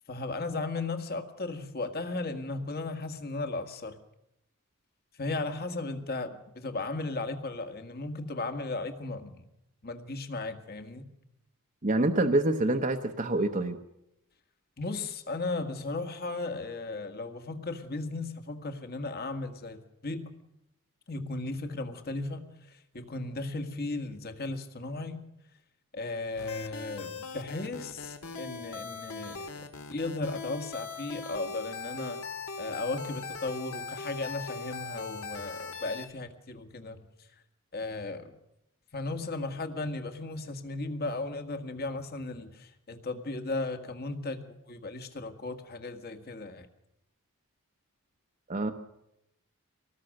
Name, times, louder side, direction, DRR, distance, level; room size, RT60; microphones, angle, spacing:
voice 1, 0.1-4.0 5.2-9.4 9.8-11.1 14.8-20.3 21.1-22.4 22.7-25.2 25.9-29.6 29.9-32.3 32.6-37.1 37.7-38.4 38.9-46.7, left 2 dB, 45° left, 1.8 m, -36 dB
voice 2, 11.8-13.8 48.5-48.7, right 2 dB, 35° right, 1.0 m, -26 dB
sound 1, 26.4-36.1, left 4 dB, 75° left, 2.1 m, -40 dB
24.5 x 19.0 x 6.6 m
head